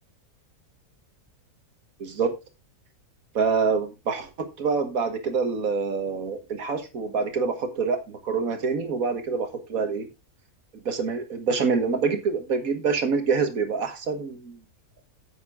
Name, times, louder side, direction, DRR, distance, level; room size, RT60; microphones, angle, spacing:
voice 1, 2.0-2.3 3.4-4.3 4.6-10.1 10.9-14.6, right 5 dB, 70° right, 7 dB, 1.8 m, -26 dB
9.4 x 8.2 x 3.6 m, 0.26 s
omnidirectional pair, 1.6 m